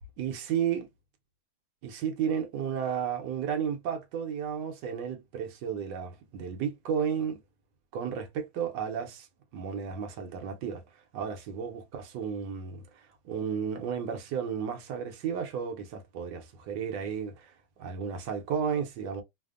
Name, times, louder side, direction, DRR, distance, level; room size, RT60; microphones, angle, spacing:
voice 1, 0.2-0.9 1.8-7.4 7.9-9.3 9.5-10.8 11.1-19.2, right 7 dB, 70° right, 1.1 m, -33 dB
3.3 x 2.0 x 2.3 m
omnidirectional pair, 2.2 m